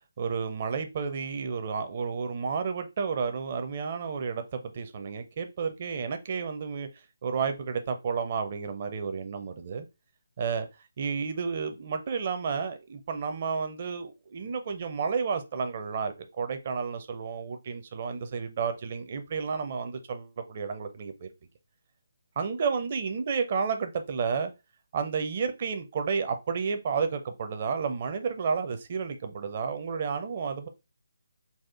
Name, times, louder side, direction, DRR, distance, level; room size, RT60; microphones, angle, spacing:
voice 1, 0.2-6.9 7.2-9.9 10.4-10.7 11.0-21.3 22.4-24.5 24.9-30.7, right 5 dB, 35° right, 0.6 m, -31 dB
4.2 x 2.4 x 3.5 m
figure-of-eight pair, 145°, 0 cm